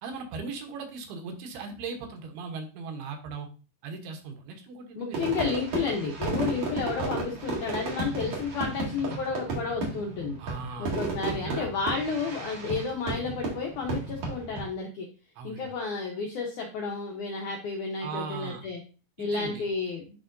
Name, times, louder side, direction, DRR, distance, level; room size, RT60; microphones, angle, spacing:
voice 1, 0.0-3.5 3.8-5.3 10.4-11.7 15.4-15.7 18.0-18.6 19.2-19.6, right 4 dB, 75° right, 4 dB, 2.9 m, -38 dB
voice 2, 5.0-10.4 10.8-15.1 15.4-18.8 19.2-20.0, left 5 dB, 80° left, 1 dB, 1.8 m, -31 dB
Fireworks, 5.1-14.7, right 3 dB, 50° right, 2.9 m, -33 dB
11.0 x 3.7 x 2.6 m, 0.35 s
omnidirectional pair, 4.7 m